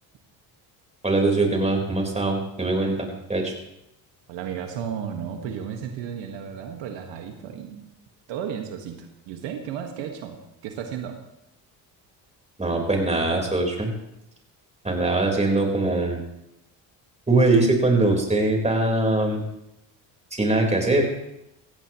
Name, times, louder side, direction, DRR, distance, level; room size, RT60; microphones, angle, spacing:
voice 1, 1.0-3.5 12.6-13.9 14.8-16.2 17.3-19.4 20.4-21.1, right 2 dB, 15° right, 1 dB, 4.3 m, -22 dB
voice 2, 4.3-7.9 8.3-11.2, right 8 dB, 85° right, 4 dB, 1.7 m, -34 dB
17.5 x 15.5 x 3.1 m, 0.83 s
supercardioid pair, 85°, 43 cm